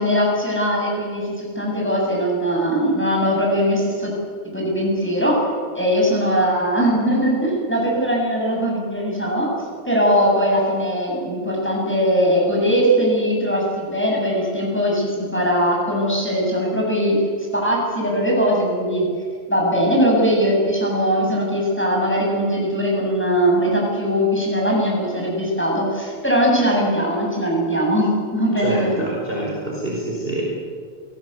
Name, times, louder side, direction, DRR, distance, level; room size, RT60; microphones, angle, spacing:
voice 1, 0.0-4.1 4.5-5.4 5.7-9.5 9.9-17.2 17.5-19.1 19.5-29.0, equal, 5° left, -3 dB, 7.8 m, -20 dB
voice 2, 28.5-30.4, right 1 dB, 15° right, -4 dB, 5.0 m, -26 dB
29.0 x 19.0 x 8.4 m, 2.1 s
omnidirectional pair, 3.3 m